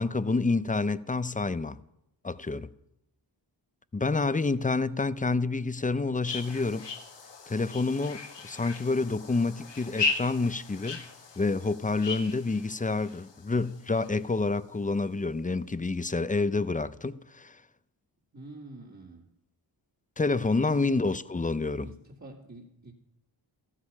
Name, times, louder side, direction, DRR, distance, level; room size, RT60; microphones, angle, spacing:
voice 1, 0.0-1.8 2.2-2.7 3.9-6.9 7.5-11.1 11.4-17.6 20.2-21.9, left 3 dB, 20° left, 0.5 m, -28 dB
sound 1, 6.3-14.5, left 4 dB, 70° left, 1.6 m, -37 dB
voice 2, 18.3-19.3 20.6-21.2 21.8-22.9, right 2 dB, 40° right, 2.5 m, -47 dB
14.5 x 13.0 x 5.5 m
wide cardioid pair, 70°, 45 cm